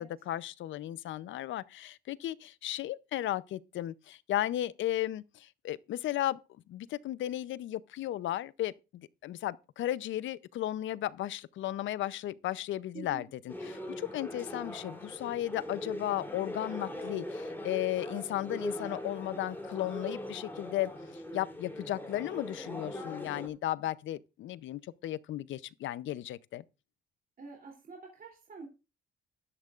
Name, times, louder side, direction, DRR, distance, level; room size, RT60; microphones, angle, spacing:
voice 1, 0.0-6.4 6.7-20.9 21.3-26.6, left 13 dB, 75° left, 0.6 m, -35 dB
voice 2, 12.9-13.3 27.4-28.7, right 4 dB, 45° right, 2.9 m, -47 dB
sound 1, 13.5-23.5, left 1 dB, 10° left, 3.2 m, -40 dB
14.0 x 12.0 x 2.4 m
cardioid pair, 90°, 20 cm